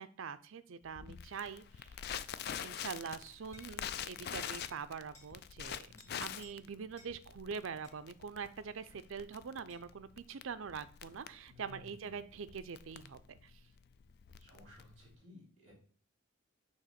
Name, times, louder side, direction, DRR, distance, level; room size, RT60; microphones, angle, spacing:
voice 1, 0.0-1.9 2.6-5.9 6.2-13.5, right 6 dB, 75° right, 13 dB, 0.5 m, -44 dB
Crackle, 0.9-15.1, left 9 dB, 50° left, 0.3 m, -45 dB
sound 1, 2.9-3.1 3.5-3.7 4.1-4.2 4.6-4.8 5.1-5.3 5.6-6.1 6.4-6.6 7.0-7.1 7.8-8.0 9.7-9.9, left 1 dB, 15° left, 1.4 m, -59 dB
voice 2, 5.8-6.2 11.5-12.2 14.4-15.7, left 2 dB, 35° right, -3 dB, 3.4 m, -57 dB
6.4 x 3.0 x 5.8 m, 0.44 s
head